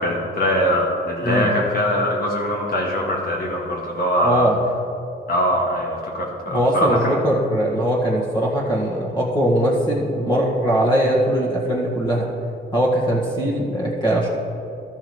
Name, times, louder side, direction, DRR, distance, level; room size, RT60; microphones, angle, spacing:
voice 1, 0.0-4.5 5.3-7.2, equal, 50° left, -2 dB, 1.8 m, -22 dB
voice 2, 4.2-4.6 6.5-12.3 12.7-14.3, equal, 25° left, -5 dB, 1.9 m, -20 dB
13.0 x 6.4 x 4.9 m, 2.7 s
cardioid pair, 90°, 20 cm